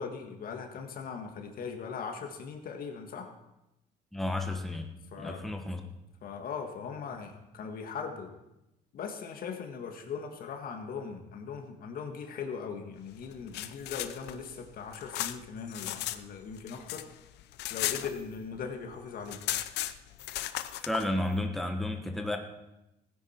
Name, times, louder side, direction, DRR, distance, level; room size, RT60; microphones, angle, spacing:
voice 1, 0.0-3.3 5.1-5.4 6.2-8.3 8.9-17.0 17.7-19.4, left 6 dB, 60° left, 4 dB, 1.8 m, -39 dB
voice 2, 4.1-4.9 5.2-5.8 20.8-22.4, left 1 dB, ahead, 4 dB, 1.1 m, -32 dB
sound 1, 13.3-16.2 16.5-18.6 18.9-19.0 19.2-21.1, left 14 dB, 80° left, 0.6 m, -36 dB
16.0 x 9.9 x 4.5 m, 0.92 s
cardioid pair, 110°, 17 cm